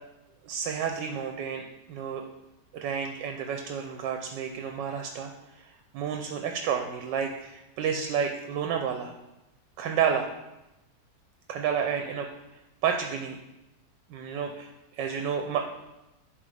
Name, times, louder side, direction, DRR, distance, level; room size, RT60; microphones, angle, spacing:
voice 1, 0.4-2.2 2.7-5.3 5.6-9.1 9.8-10.3 11.5-12.3 12.8-13.4 14.1-15.6, right 7 dB, 80° right, 4 dB, 1.3 m, -30 dB
10.5 x 3.7 x 3.3 m, 0.98 s
omnidirectional pair, 1.9 m